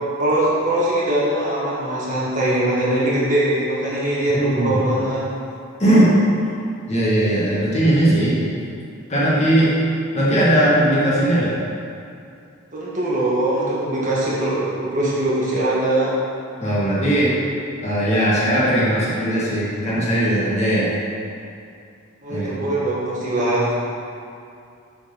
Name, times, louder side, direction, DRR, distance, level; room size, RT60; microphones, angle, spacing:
voice 1, 0.2-5.2 12.7-16.1 22.2-23.7, right 1 dB, 35° right, -7 dB, 1.7 m, -21 dB
voice 2, 4.3-4.8 5.8-6.1 6.9-8.4 9.1-9.8 10.1-11.6 16.6-17.3 17.8-20.9 22.3-22.7, right 1 dB, 30° left, -8 dB, 1.8 m, -18 dB
7.9 x 4.6 x 5.7 m, 2.5 s
head